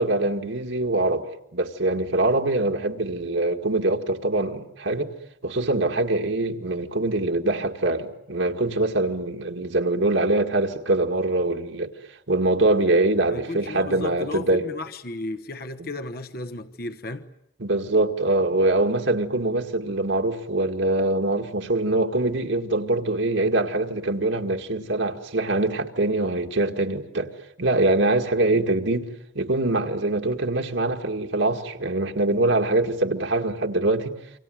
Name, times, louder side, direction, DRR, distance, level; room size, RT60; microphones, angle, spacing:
voice 1, 0.0-5.1 5.4-11.9 12.3-14.7 15.8-15.9 17.6-27.3 27.6-29.1 29.4-34.2, right 2 dB, 75° right, 2.1 m, -23 dB
voice 2, 13.3-17.3, left 2 dB, 50° left, 1.1 m, -34 dB
28.5 x 25.5 x 7.9 m
head